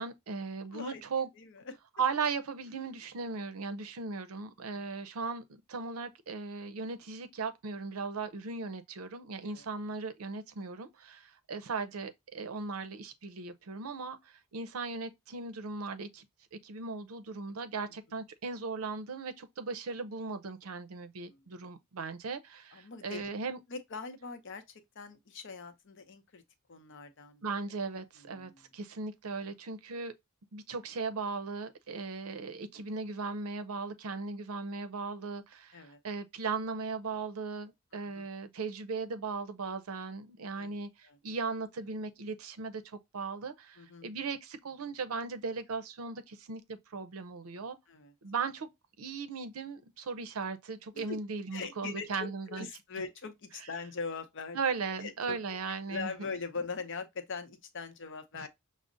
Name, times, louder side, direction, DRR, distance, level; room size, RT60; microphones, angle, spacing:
voice 1, 0.0-1.3 2.0-16.3 16.5-23.6 27.4-30.1 30.5-47.8 48.2-48.7 49.0-52.7 54.5-56.1 58.4-58.5, right 4 dB, 75° right, 0.5 m, -37 dB
voice 2, 1.3-1.8 4.7-4.8 9.5-9.6 21.3-21.5 22.7-23.3 23.7-26.4 26.7-27.4 28.2-28.6 35.7-36.0 37.9-38.2 40.5-40.8 41.0-41.2 43.8-44.1 47.9-48.1 50.9-51.2 51.5-54.6 55.0-55.4 55.9-58.5, left 4 dB, 60° left, 0.7 m, -41 dB
6.1 x 2.0 x 2.5 m
head